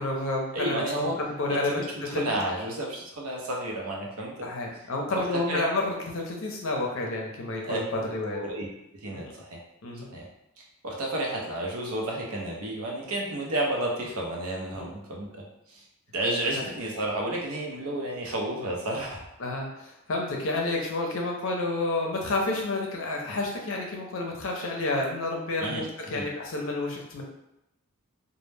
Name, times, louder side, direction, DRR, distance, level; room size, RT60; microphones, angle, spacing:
voice 1, 0.0-2.4 4.4-8.4 9.8-10.1 14.7-14.8 16.6-16.7 19.4-27.2, left 2 dB, 65° left, 0 dB, 0.5 m, -30 dB
voice 2, 0.5-1.2 1.5-4.5 5.1-5.2 5.5-5.6 7.6-7.8 8.3-8.7 9.0-9.6 10.1-10.2 10.8-15.8 16.1-19.3 25.6-26.2, right 1 dB, 80° right, -1 dB, 0.6 m, -31 dB
2.1 x 2.1 x 3.2 m, 0.87 s
head